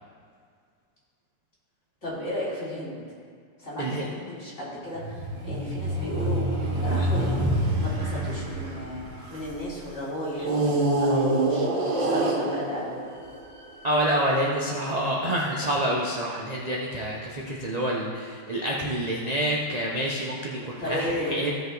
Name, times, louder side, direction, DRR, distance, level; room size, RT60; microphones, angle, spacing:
voice 1, 2.0-3.0 3.6-6.4 6.8-9.0 9.3-11.7 11.9-13.0 20.8-21.5, left 1 dB, 40° left, -9 dB, 3.4 m, -34 dB
sound 1, 5.0-9.6 10.4-13.8, right 1 dB, 80° right, 2.3 m, -26 dB
voice 2, 13.8-21.5, right 1 dB, 35° right, -4 dB, 0.7 m, -27 dB
16.0 x 5.5 x 3.9 m, 2.1 s
omnidirectional pair, 1.9 m